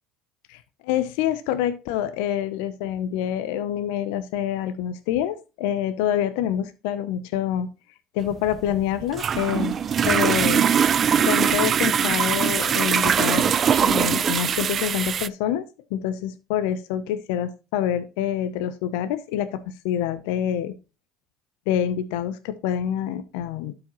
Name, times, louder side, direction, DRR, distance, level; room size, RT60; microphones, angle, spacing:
voice 1, 0.5-7.7 8.1-9.7 10.1-10.7 11.2-13.5 13.8-15.6 15.9-20.8 21.7-23.7, left 10 dB, 75° left, 12 dB, 0.6 m, -26 dB
sound 1, 8.3-15.3, right 8 dB, 40° right, 0.4 m, -21 dB
12.0 x 4.9 x 3.0 m, 0.30 s
hypercardioid pair, 75°, 0 cm